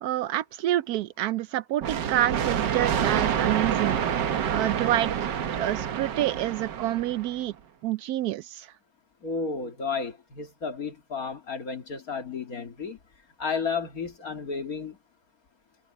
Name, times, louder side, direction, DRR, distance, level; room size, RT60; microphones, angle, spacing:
voice 1, 0.0-4.0 4.5-5.1 5.5-7.5 7.8-8.7, right 13 dB, 85° right, 0.8 m, -28 dB
sound 1, 1.8-7.4, right 8 dB, 65° right, 1.7 m, -28 dB
voice 2, 9.2-13.0 13.4-15.0, left 5 dB, 45° left, 2.5 m, -32 dB
omnidirectional pair, 2.2 m